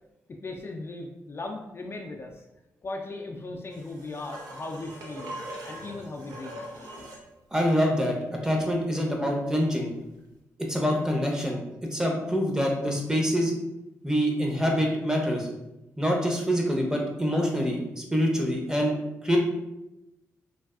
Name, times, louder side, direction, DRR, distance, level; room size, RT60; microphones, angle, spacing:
voice 1, 0.4-2.5 2.8-5.3 5.6-7.1 8.6-8.8, left 2 dB, 40° left, 1 dB, 0.4 m, -38 dB
sound 1, 3.7-7.3 10.2-10.3, right 1 dB, 80° right, 0.6 m, -41 dB
voice 2, 7.5-8.2 8.4-9.9 10.7-11.6 11.9-13.5 14.0-15.5 16.0-19.0 19.2-19.4, equal, 10° right, 0 dB, 0.7 m, -25 dB
3.2 x 2.3 x 2.4 m, 0.94 s
cardioid pair, 55°, 6 cm